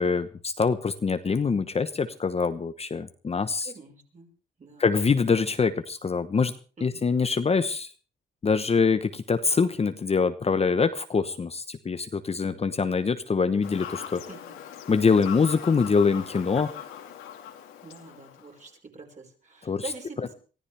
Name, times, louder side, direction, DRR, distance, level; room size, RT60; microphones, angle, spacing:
voice 1, 0.0-3.7 4.8-6.5 6.8-7.9 8.4-14.2 14.9-16.7 19.7-19.8, left 5 dB, 30° left, 10 dB, 1.0 m, -24 dB
voice 2, 3.6-4.3 4.6-4.9 6.8-7.0 14.2-14.6 17.8-20.3, right 3 dB, 40° right, 2 dB, 5.5 m, -44 dB
Fowl / Bird vocalization bird call bird song, 13.6-18.6, left 9 dB, 90° left, 2.7 m, -41 dB
23.5 x 14.5 x 3.4 m, 0.37 s
cardioid pair, 90°, 20 cm